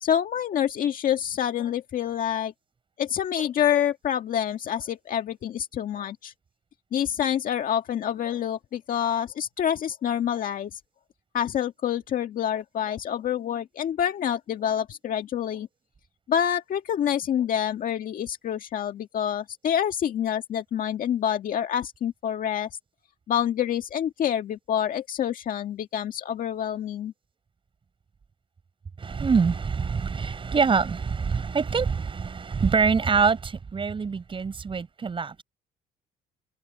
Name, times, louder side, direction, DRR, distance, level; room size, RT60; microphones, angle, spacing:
voice 1, 0.0-2.5 3.0-6.3 6.9-10.8 11.3-15.7 16.3-22.7 23.3-27.1, left 9 dB, 55° left, 1.9 m, -27 dB
voice 2, 29.0-35.4, right 5 dB, 30° right, 5.1 m, -25 dB
open air
cardioid pair, 110°, 17 cm